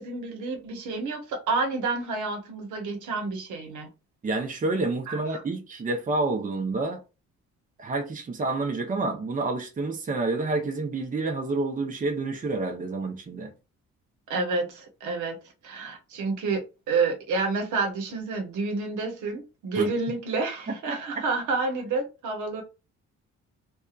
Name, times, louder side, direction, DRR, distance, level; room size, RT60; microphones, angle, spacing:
voice 1, 0.0-3.9 5.1-5.4 14.3-15.4 15.6-22.6, right 3 dB, 75° right, 0.9 m, -29 dB
voice 2, 4.2-7.0 7.8-13.5 19.8-19.9 20.9-21.0, right 3 dB, 25° right, 0.7 m, -28 dB
2.7 x 2.3 x 2.4 m
cardioid pair, 90°, 30 cm